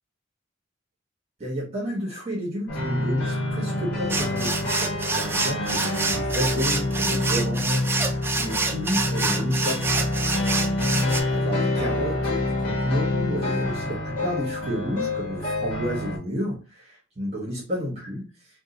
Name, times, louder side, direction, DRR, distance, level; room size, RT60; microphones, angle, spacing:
voice 1, 1.4-9.9 10.9-18.3, equal, 30° right, -3 dB, 1.0 m, -31 dB
sound 1, 2.7-16.2, left 2 dB, 50° left, 1.1 m, -27 dB
sound 2, 4.1-11.2, right 3 dB, 10° right, 0.3 m, -27 dB
2.7 x 2.2 x 3.9 m, 0.34 s
head